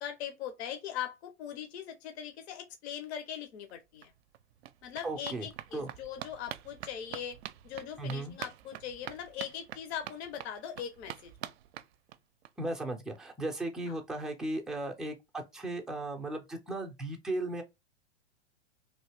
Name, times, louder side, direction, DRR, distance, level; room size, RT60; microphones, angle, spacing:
voice 1, 0.0-4.1 4.8-7.4 7.6-11.3 13.9-14.0, left 9 dB, 60° left, 0.8 m, -40 dB
sound 1, 3.7-3.8 4.0-12.5 12.8-12.9 13.2-13.3 13.5-13.6, right 12 dB, 60° right, 0.5 m, -46 dB
voice 2, 5.0-5.5 5.7-5.9 8.0-8.4 12.6-17.6, right 2 dB, ahead, 0.4 m, -36 dB
3.1 x 2.6 x 3.3 m
hypercardioid pair, 115°, 36 cm